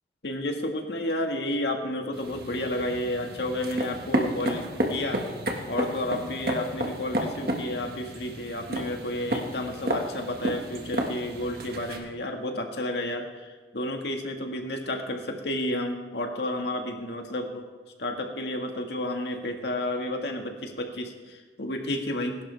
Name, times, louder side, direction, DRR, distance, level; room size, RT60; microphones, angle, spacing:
voice 1, 0.2-5.2 5.7-17.6 18.0-22.4, left 1 dB, 75° left, 3 dB, 1.8 m, -31 dB
sound 1, 2.1-12.0, equal, 55° right, 1.7 m, -32 dB
20.5 x 11.5 x 3.4 m, 1.4 s
head